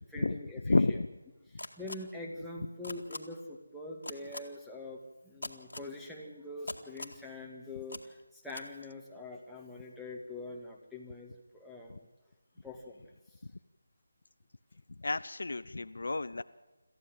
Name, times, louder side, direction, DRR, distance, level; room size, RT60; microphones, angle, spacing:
voice 1, 0.1-1.0 1.5-12.0 12.6-13.1 15.7-15.8, left 2 dB, ahead, -5 dB, 2.0 m, -44 dB
voice 2, 0.6-1.1 15.0-16.4, left 3 dB, 60° left, 13 dB, 0.7 m, -30 dB
sound 1, 1.6-2.0 2.8-3.2 4.0-4.4 5.4-5.9 6.7-7.2 7.9-8.0 8.5-8.6, left 2 dB, 75° left, 2.1 m, -40 dB
26.5 x 14.5 x 7.8 m, 1.1 s
figure-of-eight pair, 160°, 0 cm